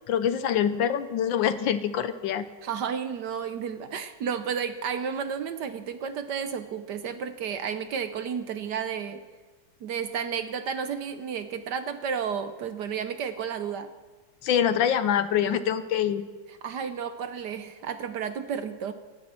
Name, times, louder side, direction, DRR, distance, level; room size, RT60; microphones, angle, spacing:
voice 1, 0.1-2.5 14.4-16.2, left 9 dB, 70° left, 12 dB, 1.4 m, -25 dB
voice 2, 2.6-9.2 9.8-13.9 16.6-18.9, right 7 dB, 65° right, 10 dB, 1.2 m, -32 dB
17.5 x 16.5 x 4.3 m, 1.3 s
omnidirectional pair, 2.3 m